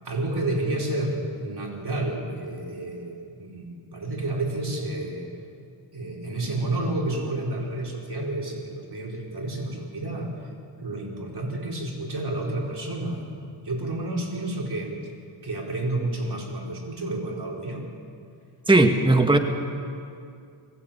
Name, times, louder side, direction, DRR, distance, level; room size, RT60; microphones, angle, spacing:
voice 1, 0.0-5.3 5.9-10.3 10.8-14.9 15.4-17.8, right 2 dB, 50° right, -1 dB, 4.8 m, -30 dB
voice 2, 18.7-19.4, right 2 dB, 10° right, 5 dB, 1.6 m, -17 dB
21.5 x 16.5 x 8.9 m, 2.4 s
cardioid pair, 75°, 50 cm